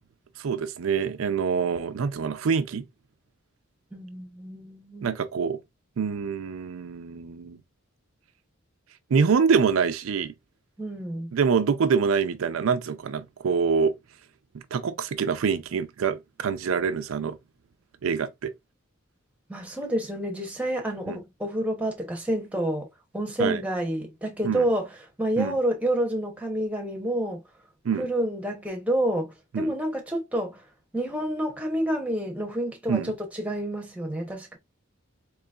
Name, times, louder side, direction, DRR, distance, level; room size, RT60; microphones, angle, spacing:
voice 1, 0.4-2.8 5.0-5.6 6.0-7.6 9.1-10.3 11.3-13.9 14.7-17.4 18.0-18.5 21.1-21.2 23.4-23.6 24.4-24.7 25.4-25.5 27.8-28.1 29.5-29.7 32.9-33.1, right 6 dB, 75° right, 0.4 m, -25 dB
voice 2, 3.9-5.1 10.8-11.3 19.5-22.9 23.1-27.4 28.0-30.6 30.9-34.6, right 1 dB, 5° right, 0.7 m, -29 dB
3.9 x 3.0 x 2.3 m
head